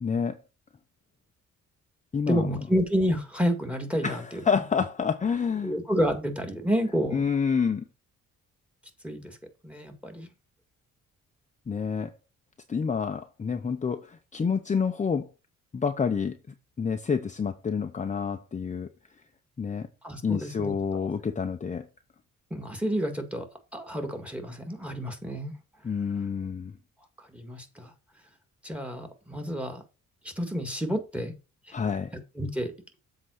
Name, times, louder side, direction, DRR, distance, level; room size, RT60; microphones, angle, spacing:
voice 1, 0.0-0.4 2.1-2.6 4.0-5.8 7.1-7.8 11.7-12.1 12.7-15.3 15.7-16.4 16.8-18.9 19.6-19.9 20.2-21.9 25.8-26.7 31.7-32.2, left 6 dB, 25° left, 0.7 m, -28 dB
voice 2, 2.3-4.2 5.6-7.2 9.0-9.3 9.6-10.3 20.0-20.7 22.5-23.4 23.7-25.5 27.3-27.9 28.6-29.8 30.4-31.3 32.4-32.7, equal, 5° right, 1.9 m, -29 dB
7.7 x 3.7 x 6.3 m
cardioid pair, 90°, 30 cm